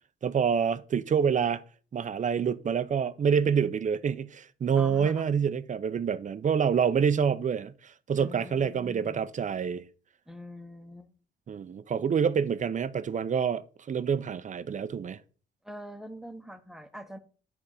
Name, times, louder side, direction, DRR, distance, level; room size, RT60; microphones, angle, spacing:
voice 1, 0.2-1.6 1.9-9.8 11.5-13.6 13.9-15.2, right 7 dB, 40° right, 0.6 m, -27 dB
voice 2, 4.7-5.4 8.2-9.2 10.3-11.1 15.6-17.2, equal, ahead, 1.1 m, -44 dB
8.7 x 3.6 x 6.4 m
cardioid pair, 90°, 20 cm